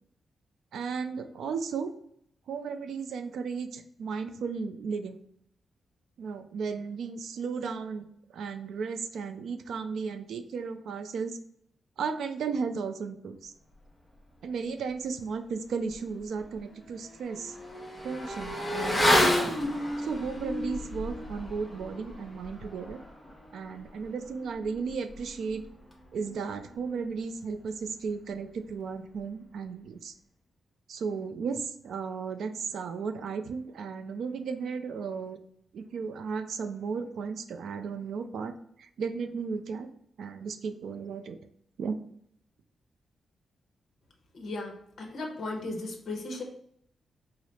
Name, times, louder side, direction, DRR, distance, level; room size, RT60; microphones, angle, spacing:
voice 1, 0.7-1.9 2.5-5.2 6.2-8.1 8.3-11.4 12.0-13.5 14.4-17.6 18.0-19.5 20.0-23.0 23.5-25.6 26.1-30.1 30.9-35.4 35.7-38.5 38.8-39.9 40.2-41.4 41.8-42.0, right 5 dB, 80° right, 9 dB, 0.4 m, -35 dB
Motorcycle / Accelerating revving vroom, 15.9-16.0 16.4-26.4 26.7-26.8, left 1 dB, 5° left, 0.6 m, -31 dB
voice 2, 44.3-46.4, left 2 dB, 55° left, 2 dB, 0.9 m, -36 dB
4.8 x 2.0 x 4.1 m, 0.68 s
wide cardioid pair, 170°, 0 cm